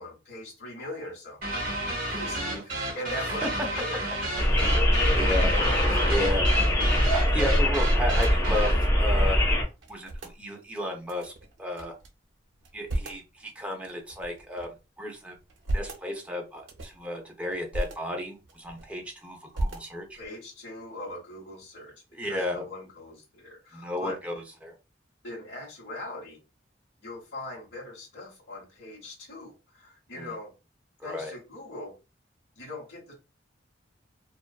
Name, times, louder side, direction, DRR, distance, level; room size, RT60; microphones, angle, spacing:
voice 1, 0.0-1.4 2.1-3.5 3.7-4.1 4.7-5.2 20.2-21.9 22.2-24.2 25.2-26.4 27.0-30.5 31.0-31.9 32.6-33.1, left 2 dB, 70° left, -7 dB, 1.0 m, -40 dB
sound 1, 1.4-8.9, right 1 dB, 50° right, 0.8 m, -32 dB
voice 2, 2.1-2.6 3.4-3.5 4.5-4.7 5.2-5.5 6.1-6.5 6.7-9.4 9.9-11.3 11.6-12.0 12.7-14.7 15.0-15.4 15.7-20.2 22.1-22.6 23.7-24.7 30.1-30.3 31.0-31.3, left 1 dB, 5° right, 1 dB, 0.6 m, -33 dB
sound 2, 4.4-9.6, equal, 20° left, 1.1 m, -22 dB
sound 3, 5.8-9.2 9.4-9.5 9.8-10.4 11.1-12.1 12.5-13.3 13.9-14.8 15.3-16.1 16.6-17.0 17.5-18.0 18.4-19.1 19.5-20.3, right 1 dB, 75° right, 0.5 m, -36 dB
2.5 x 2.3 x 2.2 m, 0.28 s
head